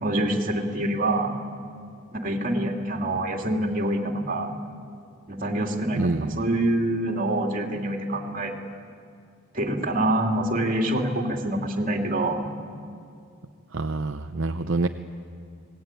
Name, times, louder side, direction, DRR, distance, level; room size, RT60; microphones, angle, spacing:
voice 1, 0.0-1.3 2.1-4.6 5.3-8.5 9.5-12.5, right 1 dB, 40° right, 2 dB, 2.8 m, -26 dB
voice 2, 5.9-6.4 13.7-14.9, right 3 dB, 60° right, 6 dB, 0.7 m, -26 dB
26.0 x 19.5 x 9.2 m, 2.3 s
head